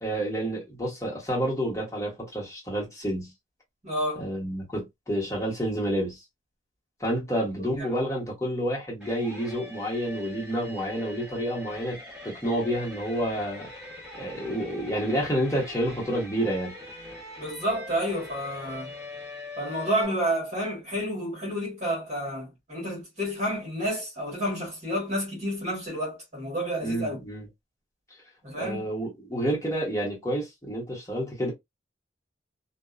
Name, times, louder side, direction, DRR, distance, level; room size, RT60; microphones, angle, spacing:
voice 1, 0.0-3.3 4.2-6.2 7.0-12.0 12.2-13.7 14.1-16.7 26.8-27.5 28.5-31.5, equal, 15° left, 1.1 m, -29 dB
voice 2, 3.8-4.3 7.8-7.9 17.4-18.9 19.6-27.2 28.4-28.8, equal, 40° right, 1.3 m, -30 dB
sound 1, 9.0-20.0, left 2 dB, 5° right, 1.3 m, -42 dB
2.6 x 2.2 x 2.3 m
head